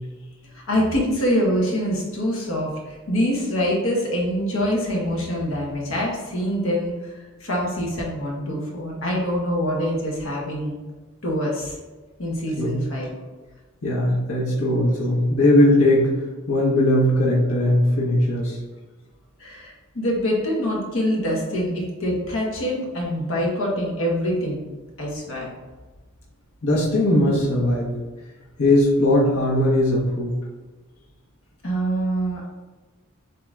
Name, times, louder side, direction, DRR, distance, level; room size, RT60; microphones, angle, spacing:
voice 1, 0.5-10.8 11.2-11.8 12.2-13.1 19.4-24.6 25.0-25.5 31.6-32.5, equal, 65° left, -2 dB, 1.2 m, -25 dB
voice 2, 13.8-16.1 16.5-18.6 26.6-27.9 28.6-30.4, left 1 dB, 85° left, -5 dB, 1.2 m, -19 dB
7.6 x 2.9 x 2.4 m, 1.2 s
head